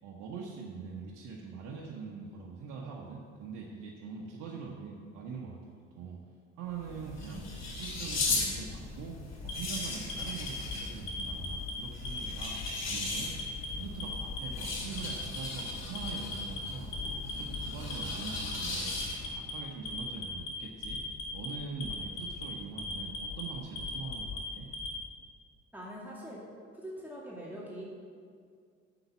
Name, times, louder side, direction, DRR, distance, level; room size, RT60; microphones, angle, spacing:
voice 1, 0.0-6.2 6.6-7.5 7.8-9.2 9.4-12.6 12.8-13.4 13.8-17.0 17.3-18.9 19.3-21.0 21.3-24.7, right 5 dB, 65° right, -2 dB, 1.2 m, -43 dB
sound 1, 6.7-19.4, left 3 dB, 50° left, 2.6 m, -38 dB
Alarm, 9.4-10.7 11.1-11.7 12.0-12.7 13.0-13.7 14.0-14.6 15.0-15.6 16.0-16.6 16.9-17.6 17.9-18.5 18.9-19.5 19.9-20.5 20.8-21.5 21.8-22.4 22.8-23.4 23.8-24.9, left 3 dB, 80° left, 2.1 m, -38 dB
voice 2, 25.7-26.4 26.7-27.8, equal, 5° right, -5 dB, 2.3 m, -43 dB
7.8 x 7.2 x 7.1 m, 2.2 s
hypercardioid pair, 55°, 34 cm